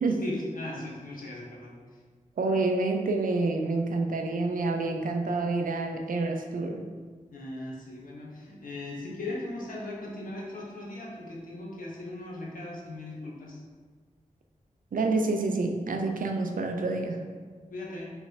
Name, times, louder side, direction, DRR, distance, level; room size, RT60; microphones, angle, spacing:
voice 1, 0.2-1.7 7.3-13.6 17.7-18.1, left 2 dB, 90° left, -3 dB, 1.0 m, -38 dB
voice 2, 2.4-6.9 14.9-17.2, right 3 dB, 85° right, 4 dB, 0.5 m, -28 dB
4.7 x 3.2 x 3.4 m, 1.5 s
wide cardioid pair, 95°, 14 cm